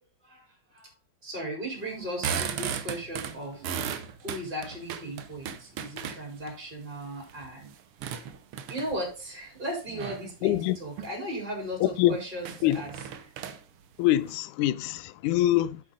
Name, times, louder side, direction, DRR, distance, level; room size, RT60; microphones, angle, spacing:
voice 1, 1.2-3.7 4.2-7.7 8.7-12.9, equal, 15° right, 4.1 m, -36 dB
sound 1, 1.9-6.5 7.0-9.1 9.9-10.3 10.8-11.1 11.5-11.6 11.9-12.0 12.4-14.4, right 8 dB, 65° right, 1.4 m, -36 dB
voice 2, 10.4-10.8 11.8-12.2 12.6-12.8 14.0-15.8, left 13 dB, 90° left, 2.1 m, -24 dB
8.5 x 8.0 x 3.8 m
omnidirectional pair, 3.4 m